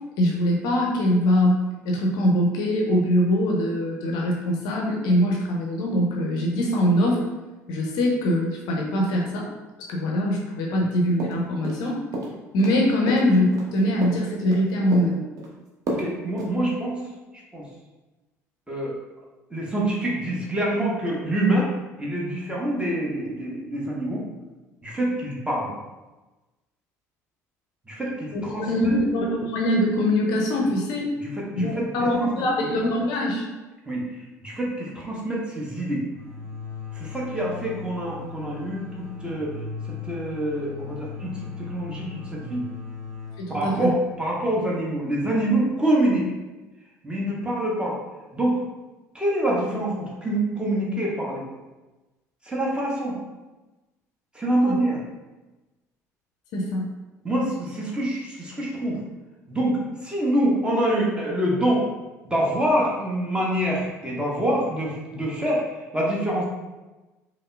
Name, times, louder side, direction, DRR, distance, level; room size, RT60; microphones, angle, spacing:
voice 1, 0.2-7.2 7.7-9.5 9.9-12.0 12.5-15.2 28.3-31.0 31.6-33.4 43.4-43.9 54.7-54.8 56.5-56.9, equal, 55° left, -1 dB, 0.5 m, -23 dB
sound 1, 11.2-11.9 12.1-12.8 13.1-14.6 14.9-15.5 15.9-16.1 16.4-16.5, right 1 dB, 45° right, 0.8 m, -31 dB
voice 2, 15.9-17.1 17.5-17.6 18.7-18.9 19.5-21.7 22.0-24.2 24.8-25.7 27.9-28.9 31.4-31.8 32.2-32.3 32.6-32.7 33.9-34.1 34.4-36.0 36.9-39.5 39.8-42.6 43.5-46.2 47.0-47.9 48.3-48.6 49.1-51.4 52.5-53.2 54.3-55.0 57.2-59.0 59.5-61.8 62.3-65.6 65.9-66.5, right 1 dB, 10° right, -4 dB, 1.0 m, -26 dB
sound 2, 36.1-45.6, left 6 dB, 85° right, 0.9 m, -39 dB
5.3 x 2.0 x 2.3 m, 1.1 s
figure-of-eight pair, 55°, 9 cm